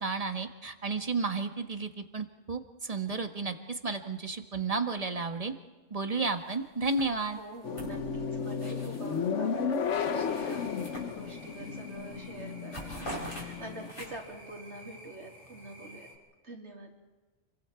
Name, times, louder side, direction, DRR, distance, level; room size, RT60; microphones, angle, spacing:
voice 1, 0.0-5.5 5.9-7.4, right 4 dB, 30° right, 7 dB, 1.6 m, -32 dB
sound 1, 6.2-6.5 6.8-9.3 9.7-11.6 12.0-12.2 12.5-14.4, equal, 50° left, 6.0 m, -45 dB
voice 2, 7.4-10.7 11.0-16.1 16.4-16.9, right 2 dB, 70° right, 0 dB, 3.9 m, -46 dB
sound 2, 7.6-13.9, left 6 dB, 85° left, 1.4 m, -34 dB
sound 3, 9.9-16.2, equal, 35° left, 4.5 m, -52 dB
29.5 x 23.5 x 4.5 m, 1.3 s
omnidirectional pair, 1.2 m